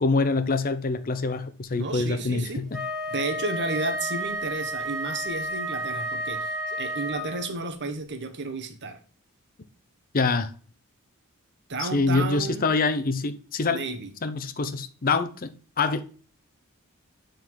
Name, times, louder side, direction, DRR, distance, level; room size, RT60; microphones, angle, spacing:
voice 1, 0.0-2.8 10.1-10.5 11.8-13.8 14.2-15.5 15.8-16.1, left 3 dB, 40° left, 0.6 m, -25 dB
voice 2, 1.7-2.7 3.1-9.0 11.7-12.7 13.7-14.1, right 3 dB, 50° right, 1.1 m, -32 dB
Wind instrument woodwind instrument, 2.7-7.6, equal, ahead, 1.7 m, -31 dB
8.9 x 3.9 x 4.6 m
head